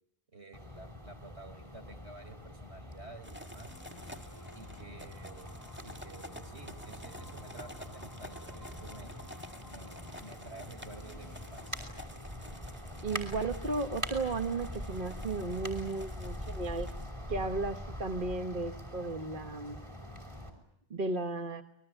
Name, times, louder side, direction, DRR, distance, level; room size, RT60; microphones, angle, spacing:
voice 1, 0.3-3.7 4.5-5.6 5.8-9.1 9.7-11.8, right 2 dB, 80° right, 6 dB, 5.0 m, -51 dB
sound 1, 0.5-20.5, equal, 30° right, 5.5 m, -44 dB
sound 2, 3.2-17.1, equal, 10° right, 1.7 m, -51 dB
sound 3, 3.6-12.0, left 1 dB, 20° left, 1.0 m, -53 dB
voice 2, 13.0-16.9 17.3-19.8 20.9-21.6, right 3 dB, 50° right, 7 dB, 1.4 m, -34 dB
28.0 x 21.5 x 9.1 m, 0.76 s
omnidirectional pair, 1.1 m